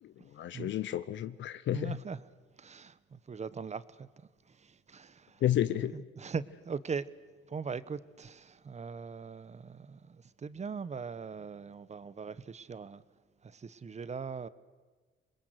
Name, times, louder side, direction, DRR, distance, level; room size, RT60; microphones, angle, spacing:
voice 1, 0.0-2.0 5.4-6.1, left 11 dB, 70° left, 0.8 m, -32 dB
voice 2, 1.7-2.2 2.6-4.1 4.5-5.4 5.9-7.1 7.5-13.0 13.4-14.5, right 5 dB, 35° right, 1.0 m, -40 dB
27.0 x 21.0 x 8.0 m
cardioid pair, 90°, 20 cm